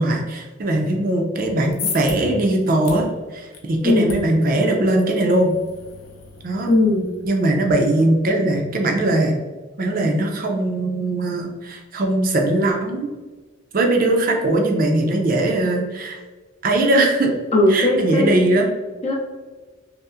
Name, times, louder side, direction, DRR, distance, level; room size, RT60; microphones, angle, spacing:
voice 1, 0.0-5.5 6.4-6.7 7.3-9.3 9.8-13.1 13.7-16.2 16.6-17.3 17.7-18.7, right 1 dB, 40° right, 2 dB, 0.4 m, -20 dB
sound 1, 1.4-7.7, left 5 dB, 85° left, 0.7 m, -37 dB
voice 2, 6.7-7.2 17.5-18.4 19.0-19.1, left 2 dB, 30° left, 0 dB, 0.5 m, -18 dB
5.3 x 2.1 x 2.4 m, 1.3 s
head